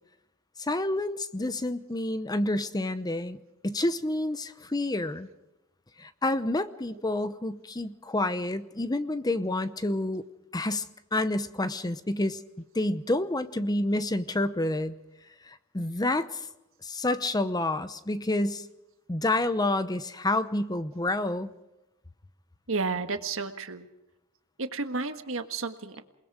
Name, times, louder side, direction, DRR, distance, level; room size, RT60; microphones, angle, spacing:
voice 1, 0.6-3.4 3.6-5.3 6.0-10.2 10.5-12.4 12.7-15.0 15.4-16.4 16.8-18.7 19.1-21.5, left 2 dB, 20° left, 12 dB, 0.8 m, -29 dB
voice 2, 22.7-23.9 24.6-26.0, right 4 dB, 65° right, 7 dB, 1.7 m, -32 dB
28.0 x 20.0 x 4.9 m, 0.97 s
head